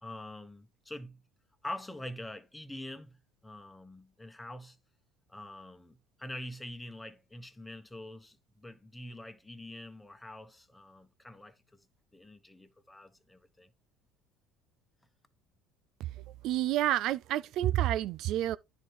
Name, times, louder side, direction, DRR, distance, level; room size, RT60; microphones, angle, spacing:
voice 1, 0.0-1.2 1.6-4.8 5.3-11.8 12.1-13.7, left 1 dB, 10° left, 1.5 m, -45 dB
voice 2, 16.0-18.6, right 13 dB, 65° right, 0.4 m, -29 dB
9.9 x 4.6 x 4.7 m
supercardioid pair, 85°, 0 cm